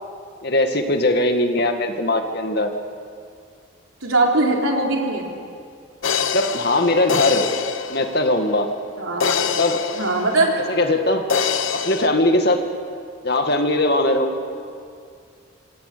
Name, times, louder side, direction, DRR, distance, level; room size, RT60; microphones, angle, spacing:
voice 1, 0.4-2.7 6.3-7.4 7.9-8.7 9.6-9.8 10.7-11.2 11.8-12.6 13.2-14.3, left 1 dB, 50° left, 5 dB, 2.1 m, -20 dB
voice 2, 4.0-5.3 9.0-9.4 9.9-10.6, right 2 dB, 85° right, 0 dB, 4.1 m, -20 dB
sound 1, 6.0-8.6 9.2-10.9 11.3-12.1, left 6 dB, 70° left, 1.0 m, -25 dB
26.5 x 26.0 x 7.0 m, 2.3 s
head